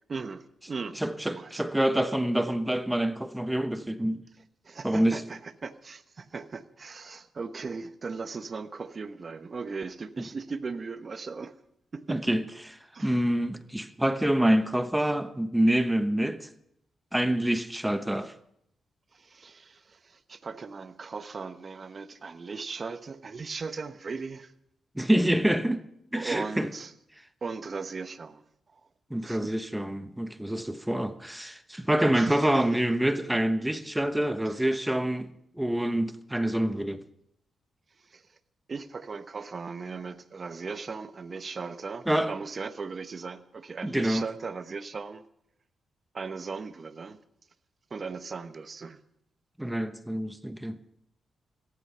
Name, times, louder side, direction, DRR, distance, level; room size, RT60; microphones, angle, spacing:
voice 1, 0.1-1.6 4.6-11.5 11.9-12.4 12.9-13.3 19.1-24.5 26.1-26.9 27.4-28.4 29.2-29.5 32.1-32.6 34.4-34.6 38.1-38.2 38.7-45.2 46.1-47.2 47.9-49.0, right 4 dB, 45° right, 1.0 m, -38 dB
voice 2, 0.9-4.2 4.8-5.2 12.1-12.7 13.0-16.5 17.1-18.3 24.9-25.8 26.1-26.7 29.1-37.0 42.1-42.3 43.8-44.2 49.6-50.8, right 1 dB, 5° right, 1.1 m, -26 dB
16.5 x 14.0 x 5.6 m
cardioid pair, 70°, 0 cm